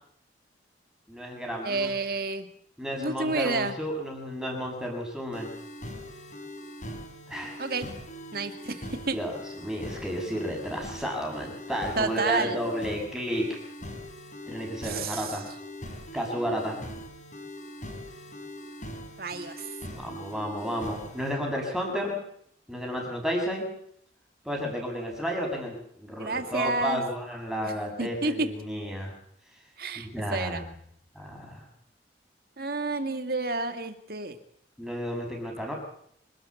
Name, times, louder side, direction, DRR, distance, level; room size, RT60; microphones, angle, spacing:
voice 1, 1.1-1.9 2.8-5.5 7.3-7.6 9.1-9.3 9.6-13.4 14.5-15.5 16.1-16.8 19.9-22.2 22.7-23.7 24.4-29.1 30.0-30.6 31.1-31.6 34.8-35.8, equal, 5° right, 0 dB, 6.6 m, -32 dB
voice 2, 1.6-2.5 3.0-3.7 7.6-7.9 8.3-9.2 12.0-12.6 14.8-15.4 19.2-19.8 26.2-27.0 27.6-27.7 28.0-28.5 29.8-30.6 32.6-34.4, right 3 dB, 55° right, 8 dB, 2.1 m, -30 dB
sound 1, 5.3-21.3, equal, 45° left, 5.5 m, -42 dB
25.5 x 13.0 x 8.5 m, 0.68 s
head